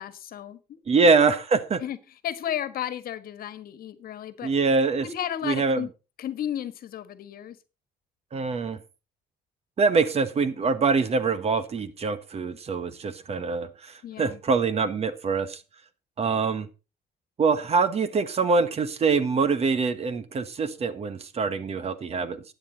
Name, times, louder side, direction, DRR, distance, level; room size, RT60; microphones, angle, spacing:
voice 1, 0.0-1.1 1.8-2.0 2.2-4.5 5.0-5.9 6.2-7.6 14.0-14.4, left 10 dB, 60° left, 14 dB, 1.5 m, -34 dB
voice 2, 0.9-1.8 4.4-5.1 5.4-5.8 8.3-8.8 9.8-15.6 16.2-16.7 17.4-22.4, right 4 dB, 40° right, 13 dB, 1.4 m, -24 dB
12.5 x 9.3 x 4.0 m, 0.31 s
cardioid pair, 110°, 17 cm